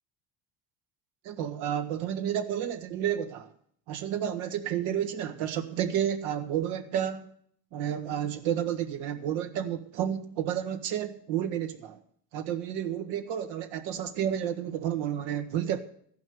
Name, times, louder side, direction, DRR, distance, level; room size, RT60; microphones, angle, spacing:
voice 1, 1.2-3.5 3.9-7.2 7.7-12.0 12.3-15.8, right 10 dB, 75° right, 1.6 m, -31 dB
14.5 x 5.8 x 9.5 m
supercardioid pair, 90°, 48 cm